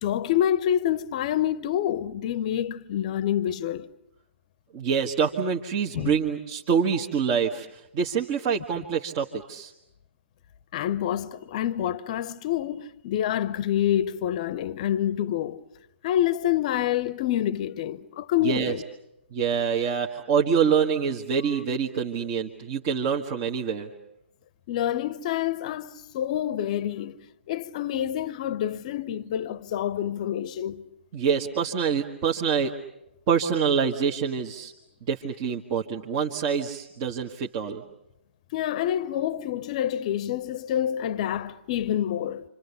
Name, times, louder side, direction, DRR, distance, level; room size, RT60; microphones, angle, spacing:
voice 1, 0.0-3.9 5.9-6.1 10.7-15.6 16.0-18.8 24.7-27.2 27.5-30.8 38.5-42.4, left 11 dB, 35° left, 1.0 m, -27 dB
voice 2, 4.7-9.7 18.4-18.7 19.3-23.9 31.1-32.7 33.3-34.7 35.1-37.8, right 6 dB, 30° right, 1.6 m, -26 dB
28.5 x 27.0 x 7.0 m
figure-of-eight pair, 130°, 7 cm